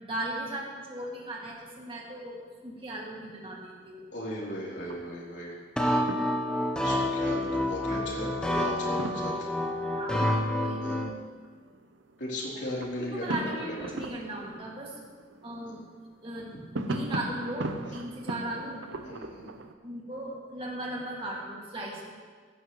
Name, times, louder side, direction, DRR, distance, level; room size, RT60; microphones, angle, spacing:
voice 1, 0.0-4.1 7.9-8.0 10.0-10.2 10.5-10.8 12.5-15.0 15.4-15.8 16.2-16.5 16.9-18.8 19.8-22.1, right 1 dB, 30° right, -3 dB, 2.2 m, -37 dB
sound 1, 1.5-2.2 2.5-2.6 3.1-3.8 4.8-5.5 6.0-19.7, right 2 dB, 80° right, 0.8 m, -40 dB
voice 2, 4.1-5.5 6.8-9.5 10.8-11.0 12.2-13.3 13.6-13.9 15.6-15.8 19.0-19.5, left 1 dB, 65° left, -5 dB, 3.5 m, -37 dB
sound 2, 5.8-11.1, left 1 dB, 5° left, 0.8 m, -28 dB
16.5 x 11.0 x 3.1 m, 1.5 s
head